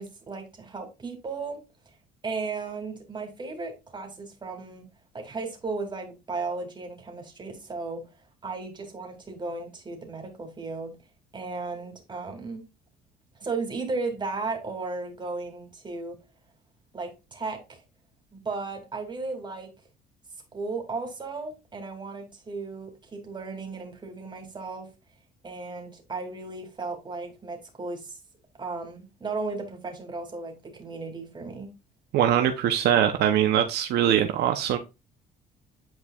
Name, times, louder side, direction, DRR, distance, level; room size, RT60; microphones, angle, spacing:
voice 1, 0.0-1.6 2.2-4.9 5.1-8.0 8.4-10.9 11.3-12.6 13.4-16.2 16.9-17.8 18.3-19.7 20.5-24.9 25.4-28.2 28.6-31.7, right 3 dB, 25° right, 2.7 m, -35 dB
voice 2, 32.1-34.8, right 10 dB, 75° right, 0.8 m, -22 dB
9.1 x 4.7 x 2.4 m
cardioid pair, 110°, 17 cm